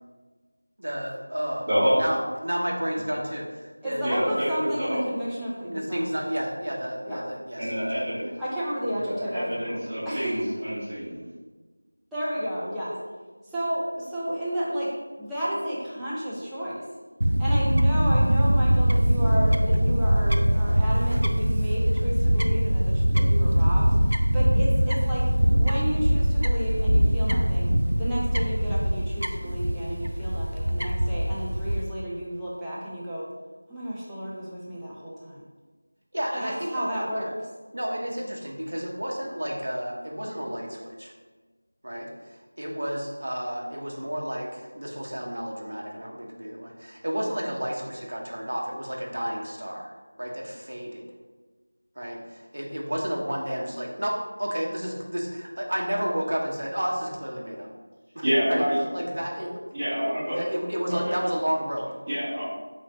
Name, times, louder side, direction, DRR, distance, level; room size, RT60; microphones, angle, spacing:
voice 1, 0.8-4.3 5.6-8.3 10.5-10.9 36.1-37.3 37.7-41.1 41.8-51.0 52.0-57.7 58.1-59.6 60.3-61.9, equal, 60° right, -1 dB, 0.9 m, -31 dB
voice 2, 1.7-2.0 4.0-5.0 7.6-8.3 8.9-11.2 58.2-58.8 59.7-60.4 60.9-61.2 62.1-62.4, equal, 20° right, -12 dB, 1.5 m, -27 dB
voice 3, 3.8-6.2 7.0-7.2 8.4-9.8 10.0-10.3 12.1-13.0 13.5-14.9 15.2-16.8 17.4-23.9 24.3-25.3 25.6-27.7 28.0-33.3 33.7-35.4 36.3-37.3, equal, ahead, -13 dB, 0.4 m, -32 dB
Fowl / Bird, 17.2-31.8, equal, 90° right, 0.4 m, -22 dB
3.8 x 3.2 x 4.0 m, 1.3 s
figure-of-eight pair, 175°, 0 cm